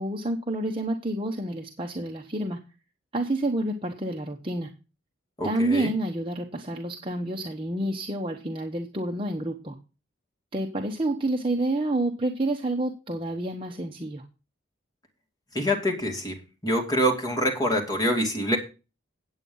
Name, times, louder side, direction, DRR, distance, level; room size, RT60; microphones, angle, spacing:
voice 1, 0.0-2.6 3.1-4.7 5.4-9.8 10.5-14.2, right 1 dB, 30° right, 2 dB, 1.0 m, -29 dB
voice 2, 5.4-5.9 15.5-16.3 16.6-18.6, equal, 20° left, 1 dB, 2.5 m, -25 dB
9.1 x 8.2 x 5.4 m, 0.30 s
head